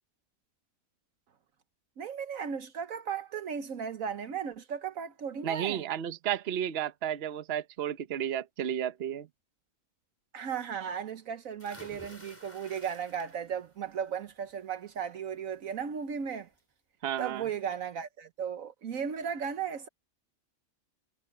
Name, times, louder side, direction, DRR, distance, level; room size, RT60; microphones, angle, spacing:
voice 1, 2.0-5.8 10.3-16.5 17.2-19.9, right 7 dB, 75° right, 1.4 m, -36 dB
voice 2, 5.4-9.3 17.0-17.5, right 10 dB, 50° right, 1.0 m, -32 dB
sound 1, 11.6-13.7 14.1-14.5 15.9-16.0 16.4-16.5, equal, 10° left, 4.9 m, -51 dB
omnidirectional pair, 1.5 m